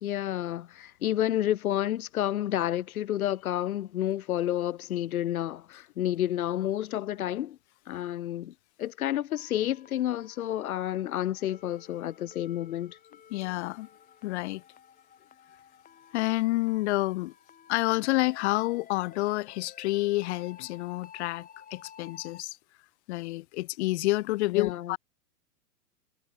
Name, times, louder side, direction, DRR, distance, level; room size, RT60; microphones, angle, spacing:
voice 1, 0.0-7.6 7.9-13.0 24.5-25.0, left 12 dB, 70° left, 1.2 m, -30 dB
sound 1, 9.3-22.4, left 8 dB, 20° left, 3.2 m, -53 dB
voice 2, 13.3-13.9 14.2-14.6 16.1-17.3 17.7-22.6 23.1-25.0, left 19 dB, 45° left, 1.1 m, -29 dB
hypercardioid pair, 115°, 45 cm